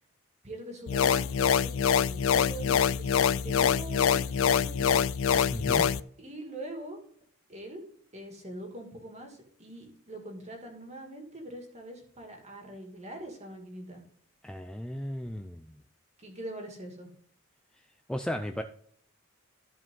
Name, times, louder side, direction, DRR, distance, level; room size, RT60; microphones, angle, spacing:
voice 1, 0.4-5.0 6.2-7.0 7.5-7.8 8.1-14.0 16.2-17.1, right 1 dB, 30° right, 3 dB, 2.3 m, -43 dB
sound 1, 0.9-6.0, left 7 dB, 65° left, 0.4 m, -25 dB
voice 2, 5.5-5.9 14.4-15.8 18.1-18.6, equal, 5° left, 6 dB, 0.4 m, -35 dB
14.0 x 5.0 x 3.8 m, 0.62 s
head